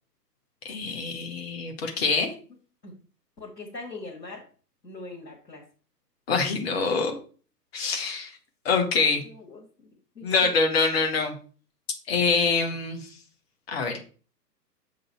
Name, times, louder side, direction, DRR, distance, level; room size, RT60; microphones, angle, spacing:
voice 1, 0.6-2.3 6.3-7.2 7.7-8.3 8.6-9.2 10.2-11.4 12.1-13.0 13.7-14.0, left 4 dB, 40° left, 4 dB, 1.1 m, -25 dB
voice 2, 3.4-4.4 4.8-5.6 9.2-9.9 10.1-10.5, left 3 dB, 85° left, -2 dB, 1.6 m, -41 dB
6.6 x 3.9 x 4.3 m, 0.40 s
figure-of-eight pair, 125°, 49 cm